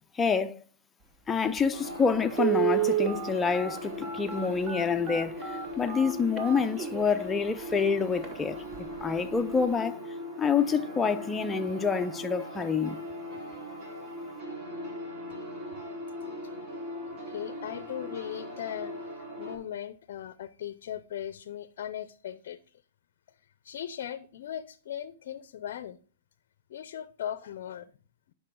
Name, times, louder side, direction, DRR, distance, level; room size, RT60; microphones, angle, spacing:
voice 1, 0.1-0.6 1.3-8.6 9.0-10.0 10.4-13.0, left 5 dB, 15° left, 0.6 m, -27 dB
Telephone, 1.6-1.7 2.3-7.2 7.7-7.8 8.2-8.3 8.7-9.0 9.3-9.4, right 10 dB, 25° right, 1.2 m, -30 dB
sound 1, 1.7-19.6, left 1 dB, 40° right, 4.0 m, -40 dB
voice 2, 17.0-22.6 23.4-26.0 26.7-27.9, left 10 dB, 65° left, 0.5 m, -38 dB
10.5 x 5.5 x 3.7 m
hypercardioid pair, 125°, 0 cm